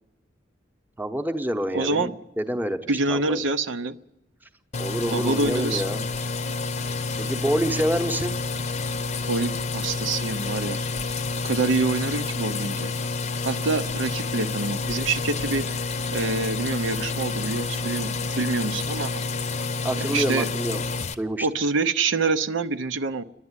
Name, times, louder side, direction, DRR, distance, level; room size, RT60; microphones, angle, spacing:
voice 1, 1.0-3.4 4.8-6.1 7.2-8.3 19.8-20.8 21.1-21.5, right 1 dB, 10° right, 6 dB, 0.9 m, -27 dB
voice 2, 1.7-2.1 2.9-3.9 5.1-5.8 9.3-10.8 11.4-12.9 13.4-15.7 16.1-19.1 20.1-20.5 21.4-23.2, right 3 dB, 75° right, 9 dB, 0.7 m, -26 dB
sound 1, 4.7-21.1, left 4 dB, 35° left, 0.7 m, -29 dB
29.0 x 11.0 x 9.7 m, 0.94 s
head